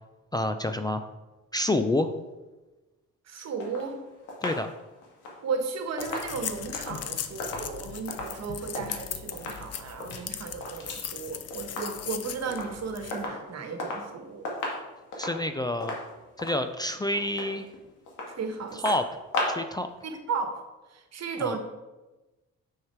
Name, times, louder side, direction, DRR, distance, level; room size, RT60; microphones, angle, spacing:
voice 1, 0.3-1.1 1.5-2.1 4.4-4.7 15.2-16.0 16.4-17.7 18.7-19.1 19.5-19.9 21.4-21.6, left 1 dB, 15° left, 8 dB, 0.4 m, -28 dB
voice 2, 3.3-4.0 5.4-14.5 18.3-18.8 20.0-20.6 20.9-21.6, right 5 dB, 60° right, 6 dB, 1.3 m, -34 dB
sound 1, 3.6-9.0 9.3-9.7 9.9-11.1 11.3-12.2 12.5-12.8 13.1-14.1 14.4-19.8 20.1-20.2, left 2 dB, 90° left, 1.9 m, -36 dB
sound 2, 6.0-13.2, left 9 dB, 55° left, 0.7 m, -38 dB
6.6 x 6.3 x 4.6 m, 1.1 s
cardioid pair, 90°, 30 cm